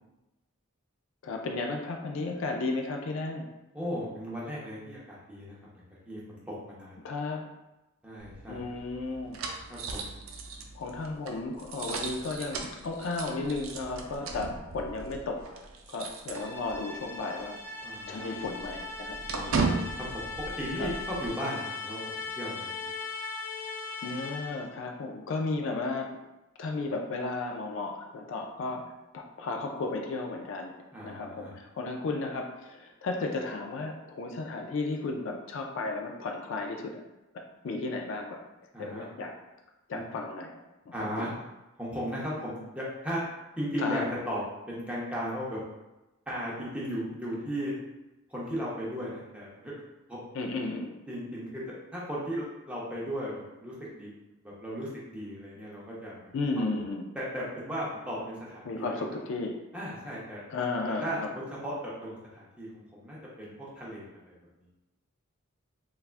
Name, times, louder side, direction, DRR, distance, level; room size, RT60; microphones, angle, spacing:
voice 1, 1.2-3.5 7.0-7.4 8.5-9.4 10.7-15.6 15.9-17.6 18.1-19.6 20.8-20.9 24.0-26.1 26.6-28.8 29.1-30.7 31.0-37.0 37.3-38.4 38.8-39.3 39.9-40.6 40.9-41.3 43.8-44.1 50.3-50.9 56.3-57.1 58.7-59.5 60.5-61.3, left 3 dB, 60° left, 2 dB, 0.3 m, -34 dB
voice 2, 3.7-7.0 8.0-8.6 9.7-10.0 17.8-18.3 20.0-20.3 20.6-22.1 22.4-22.9 30.9-31.5 38.7-39.1 39.9-40.0 40.9-41.3 41.8-43.2 43.6-44.4 44.7-45.6 46.3-47.8 48.3-49.7 50.1-50.2 51.1-51.6 51.9-54.1 54.4-56.6 57.1-58.9 59.7-60.4 60.8-64.7, equal, 5° right, -7 dB, 0.6 m, -36 dB
sound 1, 8.2-17.0 17.3-17.5 17.8-21.3, right 4 dB, 70° right, 0.4 m, -37 dB
sound 2, 16.3-24.7, left 4 dB, 85° left, 0.9 m, -39 dB
3.3 x 2.3 x 2.4 m, 1.0 s
head